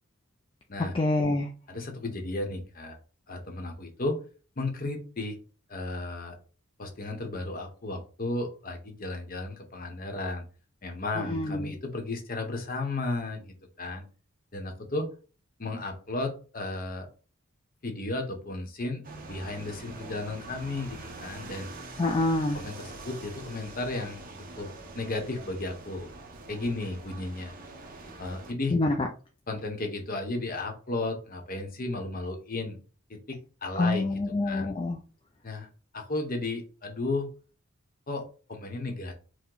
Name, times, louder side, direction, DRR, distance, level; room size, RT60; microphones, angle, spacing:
voice 1, 0.9-1.5 11.2-11.7 22.0-22.6 28.7-29.1 33.8-35.0, left 2 dB, 25° left, 2 dB, 0.4 m, -26 dB
voice 2, 1.7-3.0 3.3-4.2 4.6-5.4 5.7-6.4 6.8-10.4 10.8-14.1 14.5-15.1 15.6-17.1 17.8-19.0 19.3-21.7 22.5-24.2 24.6-26.1 26.5-27.5 28.2-28.8 29.5-32.8 33.1-34.7 35.4-35.7 35.9-37.3 38.1-39.1, left 2 dB, 40° left, 4 dB, 0.9 m, -34 dB
sound 1, 19.0-28.5, right 2 dB, 40° right, 0.8 m, -44 dB
4.6 x 2.1 x 3.8 m, 0.37 s
head